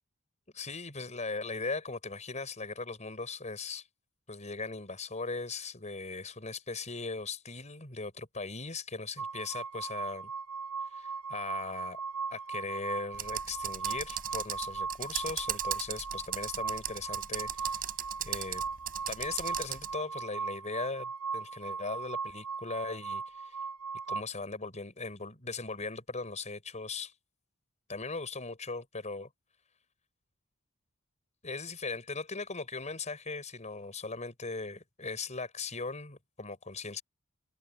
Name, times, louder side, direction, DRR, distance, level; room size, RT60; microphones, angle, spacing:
voice 1, 0.5-3.8 4.3-10.3 10.9-12.0 12.3-17.9 18.2-18.6 19.1-23.6 24.1-27.1 27.9-29.3 31.4-37.0, left 3 dB, 35° left, 5.7 m, -39 dB
sound 1, 9.2-24.2, right 5 dB, 80° right, 1.2 m, -38 dB
Computer keyboard, 13.1-19.9, right 10 dB, 45° right, 4.6 m, -37 dB
open air
head